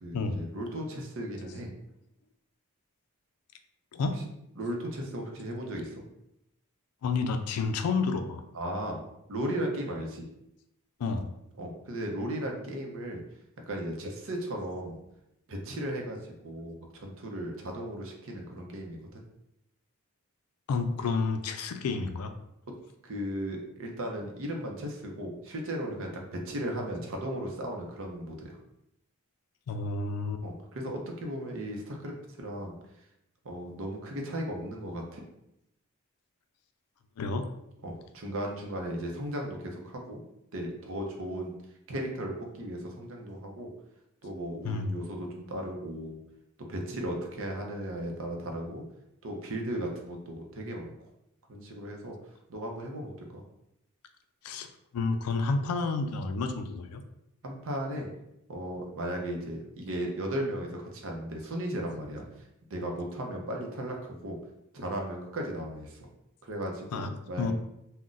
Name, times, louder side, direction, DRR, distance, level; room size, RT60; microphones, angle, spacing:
voice 1, 0.0-1.7 4.6-6.0 8.5-9.0 9.3-10.3 11.6-13.2 13.7-15.0 15.5-16.2 16.4-19.2 23.0-28.5 30.4-32.8 33.4-35.2 37.8-40.2 40.5-41.5 41.9-43.7 44.2-46.2 46.7-48.8 49.2-50.9 51.5-52.2 52.5-53.4 57.4-58.1 58.5-62.2 62.7-64.4 64.7-66.0 66.5-67.0 67.3-67.5, right 1 dB, 60° right, 1 dB, 0.6 m, -36 dB
voice 2, 7.0-8.4 11.0-11.3 20.7-22.3 29.7-30.4 37.2-37.5 44.6-44.9 54.4-57.0 66.9-67.5, left 4 dB, 80° left, 7 dB, 0.4 m, -30 dB
2.4 x 2.1 x 3.8 m, 0.82 s
head